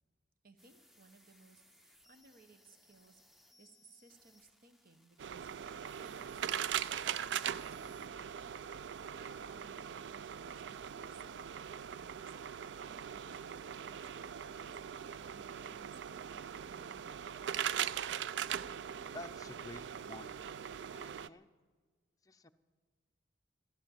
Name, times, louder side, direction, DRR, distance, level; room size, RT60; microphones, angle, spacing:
voice 1, 0.4-3.2 3.6-8.3 9.1-12.3 12.7-17.3, right 3 dB, 55° right, 9 dB, 1.3 m, -62 dB
sound 1, 0.6-8.1, equal, ahead, 0.9 m, -65 dB
sound 2, 5.2-21.3, right 9 dB, 70° right, 0.4 m, -41 dB
voice 2, 19.1-20.4 20.9-21.5 22.2-22.5, left 2 dB, 20° left, 7 dB, 0.6 m, -50 dB
15.0 x 12.0 x 7.5 m, 1.4 s
head